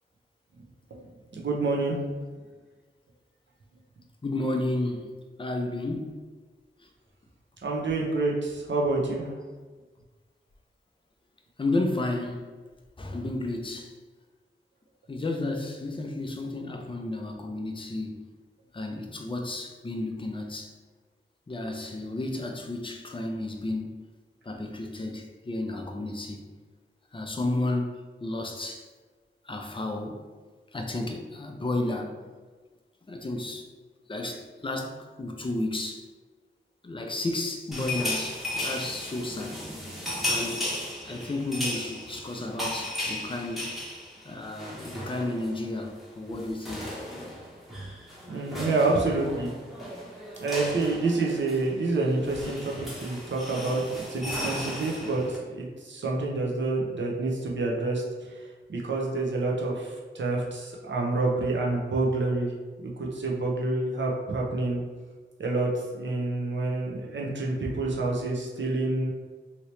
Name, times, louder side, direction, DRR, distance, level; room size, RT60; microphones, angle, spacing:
voice 1, 1.3-2.0 7.6-9.3 48.3-49.5 50.4-53.8 54.1-58.0 58.7-62.5 62.8-64.8 65.4-65.7 66.0-69.1, right 2 dB, 60° right, -2 dB, 0.7 m, -28 dB
voice 2, 4.2-5.1 5.4-6.1 11.6-12.5 13.0-13.9 15.1-18.2 18.7-20.7 21.5-24.0 24.4-26.4 27.1-28.9 29.4-30.2 30.7-32.2 33.1-33.7 34.1-36.0 36.8-39.6 40.2-40.7 41.0-43.7 44.2-46.9, left 2 dB, 25° left, 3 dB, 0.5 m, -32 dB
sound 1, 37.7-45.6 45.9-46.1 46.3-55.4, left 1 dB, ahead, 1.0 m, -35 dB
2.9 x 2.8 x 3.1 m, 1.4 s
cardioid pair, 60°, 21 cm